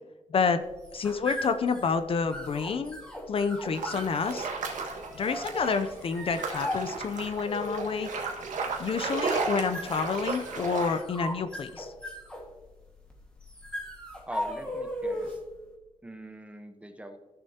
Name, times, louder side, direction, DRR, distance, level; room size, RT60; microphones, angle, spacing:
voice 1, 0.3-0.6 0.9-3.0 3.3-4.5 5.1-8.1 8.8-11.9, left 5 dB, 45° left, 10 dB, 0.5 m, -29 dB
sound 1, 0.6-15.5, equal, 10° left, 1.7 m, -38 dB
sound 2, 3.7-11.0, right 4 dB, 80° right, 1.6 m, -34 dB
voice 2, 14.3-15.4 16.0-17.2, right 1 dB, 10° right, 7 dB, 0.8 m, -43 dB
15.0 x 6.9 x 2.8 m, 1.2 s
wide cardioid pair, 145°, 13 cm